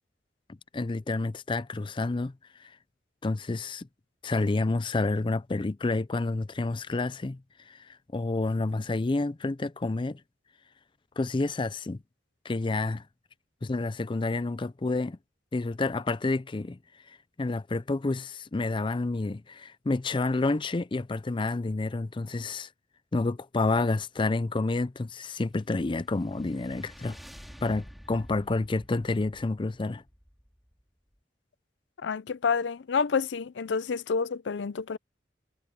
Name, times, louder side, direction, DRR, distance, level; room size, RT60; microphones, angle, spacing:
voice 1, 0.7-2.3 3.2-3.9 4.2-7.4 7.7-7.8 8.1-10.2 11.2-12.0 12.4-13.0 13.6-15.2 15.5-16.8 17.1-22.7 23.1-27.2 27.6-30.0, left 3 dB, 30° left, 0.5 m, -29 dB
sound 1, 25.5-30.9, equal, ahead, 4.1 m, -50 dB
voice 2, 32.0-35.0, left 5 dB, 75° left, 0.5 m, -28 dB
head